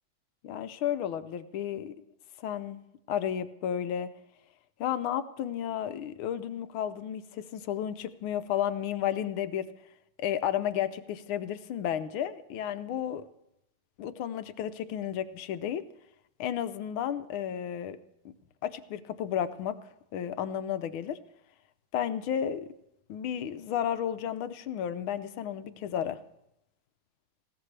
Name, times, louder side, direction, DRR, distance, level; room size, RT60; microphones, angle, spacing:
voice 1, 0.4-1.9 2.4-2.8 3.1-4.1 4.8-9.7 10.2-13.3 14.0-15.8 16.4-18.0 18.6-19.8 20.1-21.2 21.9-22.7 23.1-26.2, left 10 dB, 75° left, 12 dB, 1.5 m, -32 dB
19.5 x 16.5 x 3.3 m, 0.83 s
omnidirectional pair, 2.3 m